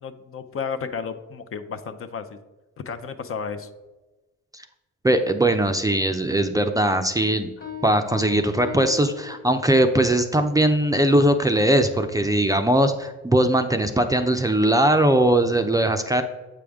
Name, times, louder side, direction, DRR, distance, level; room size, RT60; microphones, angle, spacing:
voice 1, 0.0-2.4 2.9-3.7, left 6 dB, 45° left, 8 dB, 0.6 m, -32 dB
voice 2, 5.0-7.5 7.8-16.2, right 1 dB, 10° right, 6 dB, 0.4 m, -20 dB
Piano, 7.6-10.0, left 10 dB, 30° left, 1.1 m, -38 dB
7.7 x 5.0 x 3.5 m, 1.1 s
cardioid pair, 90°, 30 cm